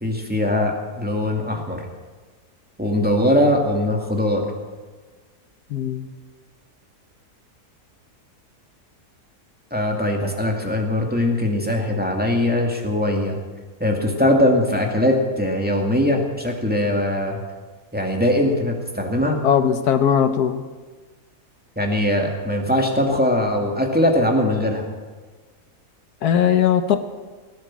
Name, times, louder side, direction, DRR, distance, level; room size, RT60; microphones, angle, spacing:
voice 1, 0.0-1.8 2.8-4.4 9.7-13.4 13.8-17.4 17.9-19.4 21.8-24.8, left 1 dB, 5° right, 1 dB, 2.1 m, -21 dB
voice 2, 5.7-6.1 19.4-20.6 26.2-27.0, left 8 dB, 80° left, 10 dB, 1.4 m, -19 dB
19.0 x 10.5 x 7.5 m, 1.4 s
omnidirectional pair, 1.7 m